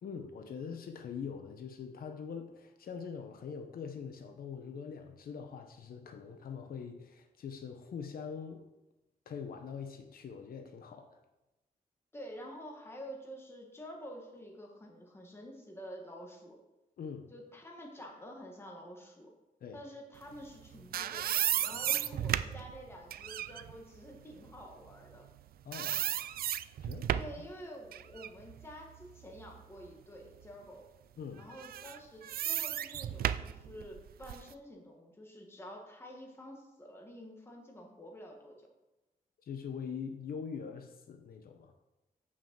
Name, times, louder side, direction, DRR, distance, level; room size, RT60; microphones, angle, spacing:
voice 1, 0.0-8.6 9.3-11.2 17.0-17.3 19.6-19.8 21.7-21.8 25.6-26.1 26.8-27.4 31.2-31.4 39.5-41.7, left 6 dB, 75° left, 6 dB, 0.9 m, -43 dB
voice 2, 12.1-16.6 17.3-19.3 19.7-25.3 27.1-30.9 31.4-38.7, equal, 15° left, 0 dB, 1.7 m, -49 dB
sound 1, 20.5-25.4 25.7-27.4 27.9-29.9 30.3-30.5 31.5-34.5, right 11 dB, 80° right, 0.4 m, -35 dB
6.8 x 6.2 x 7.5 m, 0.99 s
wide cardioid pair, 170°, 15 cm